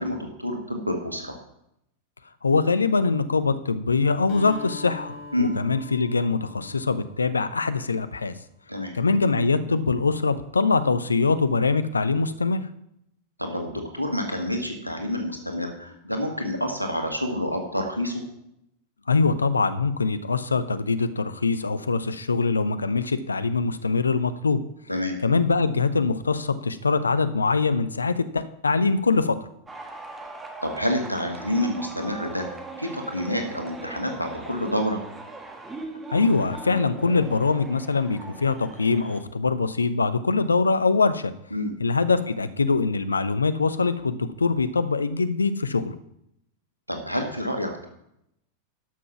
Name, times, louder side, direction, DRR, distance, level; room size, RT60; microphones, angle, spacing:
voice 1, 0.0-1.4 5.3-5.5 8.7-8.9 13.4-18.2 24.9-25.2 30.6-32.5 32.8-35.0 41.5-41.7 46.9-47.9, left 1 dB, 90° right, 3 dB, 1.7 m, -28 dB
voice 2, 2.4-8.3 8.9-12.7 19.1-24.6 25.2-29.5 36.1-41.3 41.8-46.0, left 4 dB, 75° left, 12 dB, 0.7 m, -23 dB
Acoustic guitar, 4.3-8.1, left 3 dB, 45° left, 2.8 m, -42 dB
sound 1, 29.7-39.2, right 3 dB, 15° right, 1.5 m, -40 dB
12.0 x 6.2 x 5.9 m, 0.80 s
figure-of-eight pair, 90°, 0 cm